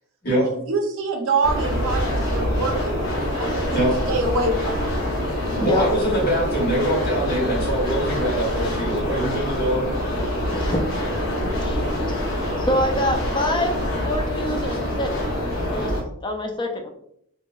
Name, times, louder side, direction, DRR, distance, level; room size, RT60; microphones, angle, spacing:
voice 1, 0.3-3.0 3.4-5.0, right 3 dB, 60° right, 2 dB, 0.6 m, -26 dB
sound 1, 1.4-16.0, equal, 60° left, 0.7 m, -25 dB
voice 2, 5.6-9.9 14.7-14.8, right 1 dB, 40° left, -5 dB, 1.4 m, -23 dB
voice 3, 11.4-12.2 12.6-15.1 15.7-15.9 16.2-16.9, left 1 dB, 20° left, 4 dB, 0.3 m, -26 dB
2.9 x 2.7 x 2.3 m, 0.71 s
head